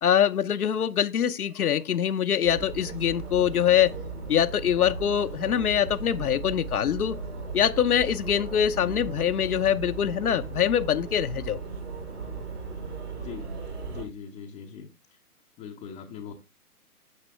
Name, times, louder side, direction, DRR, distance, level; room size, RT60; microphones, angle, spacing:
voice 1, 0.0-3.9 4.3-7.2 7.5-11.6, left 9 dB, 70° left, 0.8 m, -24 dB
sound 1, 2.4-14.0, right 4 dB, 80° right, 5.7 m, -37 dB
voice 2, 8.7-9.1 13.2-13.5 13.9-15.2 15.6-16.3, left 7 dB, 10° left, 0.6 m, -41 dB
9.6 x 7.4 x 3.2 m
figure-of-eight pair, 130°, 46 cm